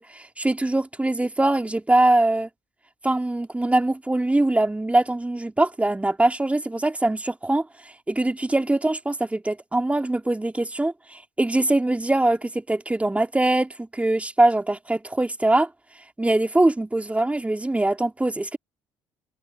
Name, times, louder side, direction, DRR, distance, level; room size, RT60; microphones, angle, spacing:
voice 1, 0.0-2.5 3.0-15.7 16.2-18.6, right 2 dB, 10° right, 2.9 m, -22 dB
hypercardioid pair, 55°, 12 cm